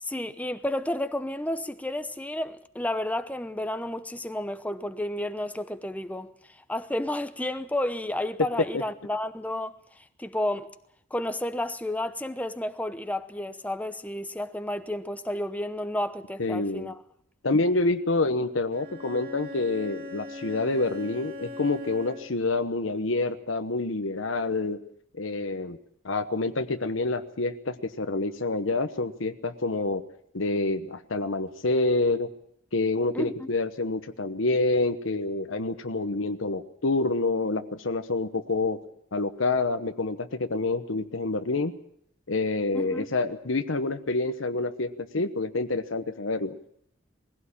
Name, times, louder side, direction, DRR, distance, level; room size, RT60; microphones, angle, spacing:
voice 1, 0.0-9.8 10.2-10.7 11.1-17.0 33.1-33.5 42.7-43.1, left 1 dB, 10° left, 0.8 m, -31 dB
voice 2, 16.4-16.9 17.4-24.8 25.2-25.8 26.0-30.0 30.3-32.3 32.7-38.8 39.1-41.7 42.3-46.6, left 3 dB, 85° left, 1.1 m, -27 dB
Bowed string instrument, 18.7-22.5, left 2 dB, 45° right, 2.7 m, -40 dB
20.5 x 16.0 x 8.6 m
head